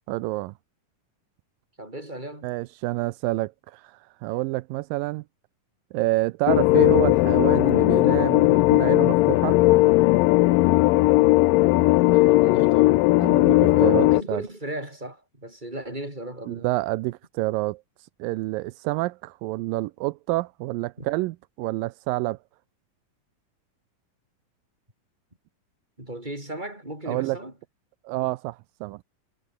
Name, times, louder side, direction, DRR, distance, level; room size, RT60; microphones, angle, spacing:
voice 1, 0.1-0.5 2.4-5.2 5.9-9.6 13.2-14.4 16.5-17.8 18.2-22.4 27.1-27.4 28.1-29.0, right 20 dB, 85° right, 2.3 m, -28 dB
voice 2, 1.8-2.5 12.0-13.2 13.6-16.7 21.0-21.1 26.0-27.5, right 1 dB, 10° right, 7.8 m, -36 dB
sound 1, 6.5-14.2, left 19 dB, 90° left, 2.3 m, -18 dB
omnidirectional pair, 3.9 m